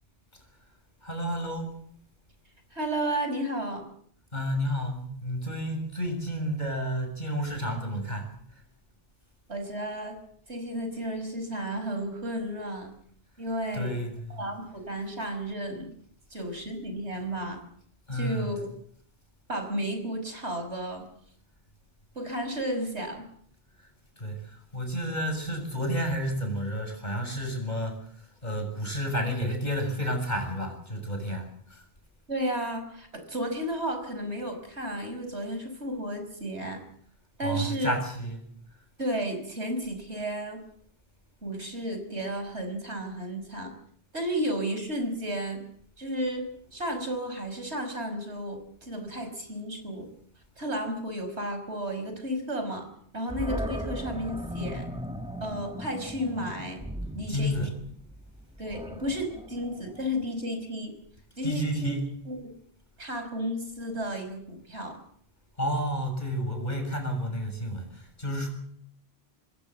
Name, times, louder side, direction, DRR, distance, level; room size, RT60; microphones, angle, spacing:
voice 1, 1.0-1.8 4.3-8.3 13.7-14.4 18.1-18.5 24.2-28.0 28.4-31.8 37.4-38.5 57.3-57.7 61.4-62.1 65.6-68.5, equal, 45° left, 5 dB, 7.0 m, -31 dB
voice 2, 2.7-3.9 9.5-10.2 10.5-12.9 13.4-13.9 14.3-15.9 16.3-17.6 18.1-18.7 19.5-21.1 22.2-23.3 32.3-36.8 37.4-37.9 39.0-40.6 41.4-43.7 44.1-45.6 46.0-50.1 50.6-52.9 53.1-54.9 55.4-56.8 57.1-57.6 58.6-60.9 61.4-61.9 62.3-62.4 63.0-65.0, equal, 90° right, 7 dB, 5.7 m, -33 dB
Animal, 53.3-60.4, equal, 5° right, 1.6 m, -37 dB
26.5 x 20.5 x 7.5 m, 0.65 s
omnidirectional pair, 1.1 m